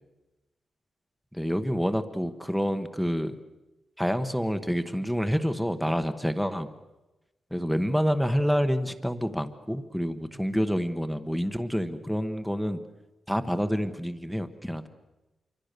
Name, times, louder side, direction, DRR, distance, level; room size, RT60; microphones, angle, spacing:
voice 1, 1.3-3.4 4.0-6.7 7.5-12.8 13.3-14.8, equal, ahead, 10 dB, 1.0 m, -28 dB
26.5 x 24.0 x 6.7 m, 1.0 s
wide cardioid pair, 165°, 0 cm